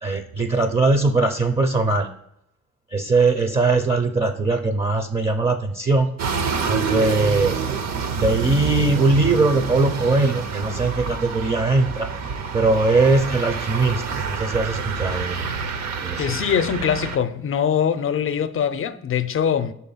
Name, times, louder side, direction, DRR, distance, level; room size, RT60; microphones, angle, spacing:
voice 1, 0.0-2.1 2.9-6.1 6.6-7.6 8.2-12.1 12.5-15.5 16.0-16.4, right 3 dB, 20° right, 0.5 m, -20 dB
sound 1, 6.2-17.2, right 5 dB, 60° right, 0.7 m, -27 dB
voice 2, 16.2-19.7, left 8 dB, 45° left, 0.5 m, -22 dB
5.4 x 4.2 x 5.5 m
cardioid pair, 90°, 30 cm